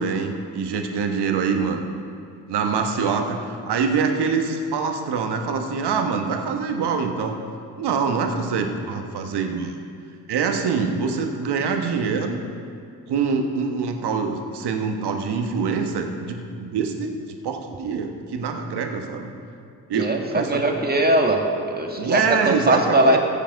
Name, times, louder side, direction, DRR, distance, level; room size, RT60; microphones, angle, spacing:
voice 1, 0.0-1.9 2.5-7.4 7.8-9.7 10.3-12.4 13.1-19.3 19.9-20.6 22.0-23.2, right 5 dB, 65° right, 4 dB, 1.3 m, -25 dB
voice 2, 19.9-21.4 21.8-23.2, right 1 dB, 20° right, 2 dB, 1.9 m, -20 dB
14.5 x 7.3 x 5.3 m, 2.4 s
hypercardioid pair, 40°, 44 cm